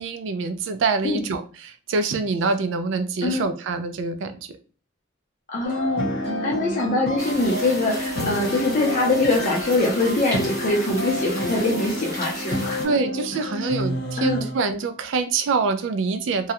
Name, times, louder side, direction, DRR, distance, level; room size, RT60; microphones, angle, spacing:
voice 1, 0.0-4.6 6.3-6.8 12.8-16.5, right 4 dB, 65° right, 9 dB, 0.3 m, -25 dB
voice 2, 5.5-12.8 14.2-14.4, left 2 dB, 40° left, -2 dB, 0.5 m, -23 dB
sound 1, 5.6-14.6, equal, 65° left, 1.0 m, -29 dB
sound 2, 7.2-12.9, equal, 15° right, 0.8 m, -35 dB
2.3 x 2.0 x 2.9 m, 0.37 s
head